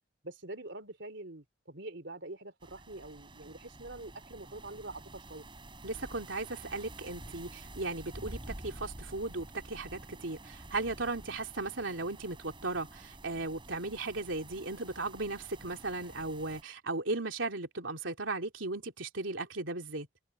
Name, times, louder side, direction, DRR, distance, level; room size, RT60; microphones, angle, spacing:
voice 1, 0.2-5.4, right 2 dB, 70° right, 3.3 m, -45 dB
sound 1, 2.6-16.6, right 1 dB, 25° right, 5.5 m, -49 dB
voice 2, 5.8-20.1, right 3 dB, 90° right, 3.3 m, -36 dB
head